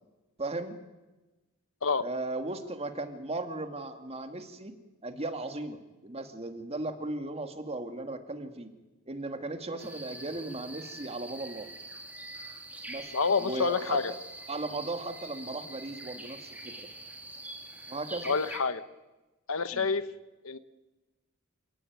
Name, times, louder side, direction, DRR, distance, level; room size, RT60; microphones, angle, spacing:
voice 1, 0.4-0.7 2.0-4.7 5.0-8.7 9.1-11.7 12.9-13.1 13.4-14.0 14.5-16.9 17.9-18.3 19.7-19.9, right 2 dB, 30° right, 7 dB, 2.3 m, -36 dB
sound 1, 9.8-18.6, right 2 dB, 5° right, 3.2 m, -44 dB
voice 2, 13.1-14.1 18.2-18.8 19.5-20.0 20.4-20.6, left 5 dB, 70° left, 12 dB, 1.3 m, -27 dB
28.0 x 18.0 x 9.6 m, 1.1 s
head